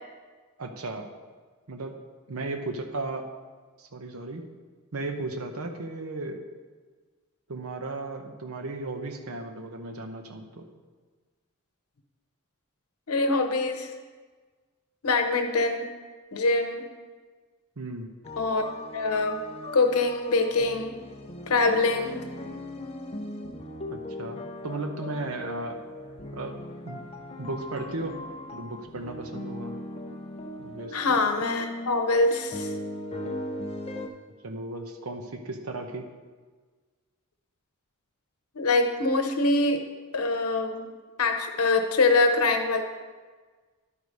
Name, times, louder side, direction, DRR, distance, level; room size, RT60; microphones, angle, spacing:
voice 1, 0.6-1.1 1.7-2.0 2.3-3.3 3.8-4.4 4.9-6.4 7.5-10.7 17.8-18.1 23.9-25.8 26.3-27.0 27.4-28.2 28.5-29.8 30.6-31.0 34.4-36.1, right 2 dB, 75° right, 5 dB, 0.9 m, -35 dB
voice 2, 13.1-13.9 15.0-15.9 16.3-16.9 18.4-19.4 19.7-21.0 21.5-22.2 30.9-32.7 38.5-39.8 40.1-40.9 41.2-42.8, left 3 dB, 90° left, 6 dB, 0.9 m, -24 dB
sound 1, 18.2-34.1, left 1 dB, 30° left, 0.7 m, -38 dB
11.5 x 4.8 x 5.3 m, 1.4 s
head